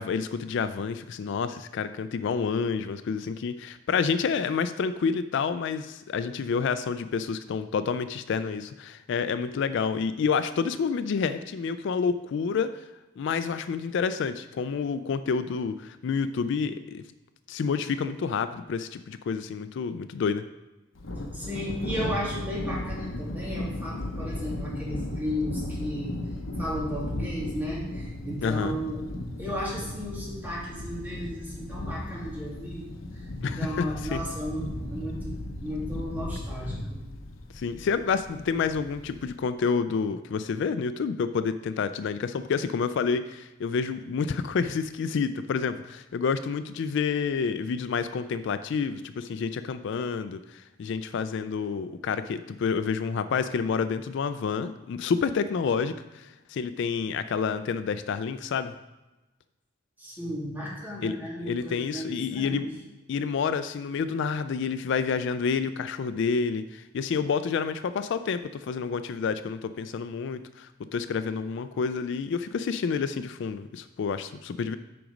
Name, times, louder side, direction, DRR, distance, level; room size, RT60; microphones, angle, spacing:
voice 1, 0.0-12.8 13.2-17.0 17.5-20.4 28.4-28.7 33.4-33.9 34.1-34.2 37.5-58.7 61.0-61.2 61.4-62.7 63.1-74.8, left 5 dB, 65° left, 12 dB, 0.3 m, -29 dB
Thunder, 21.0-39.4, left 1 dB, 80° left, 0.8 m, -36 dB
voice 2, 21.3-26.2 26.6-29.0 29.4-32.9 33.1-35.3 35.6-37.0 60.0-62.7, equal, 10° right, -6 dB, 2.4 m, -34 dB
7.7 x 5.0 x 5.2 m, 1.1 s
head